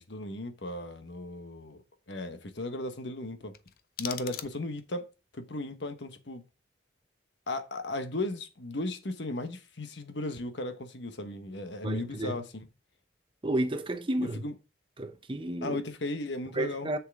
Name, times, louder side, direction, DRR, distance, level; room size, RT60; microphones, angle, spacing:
voice 1, 0.0-3.5 4.0-6.4 7.5-12.7 14.2-14.5 15.6-16.9, left 2 dB, 75° left, 1.2 m, -36 dB
sound 1, 3.5-5.0, left 10 dB, 55° left, 0.6 m, -42 dB
voice 2, 11.8-12.4 13.4-14.4 15.0-15.8 16.5-17.0, right 1 dB, 25° right, 0.8 m, -31 dB
7.6 x 6.7 x 3.6 m
head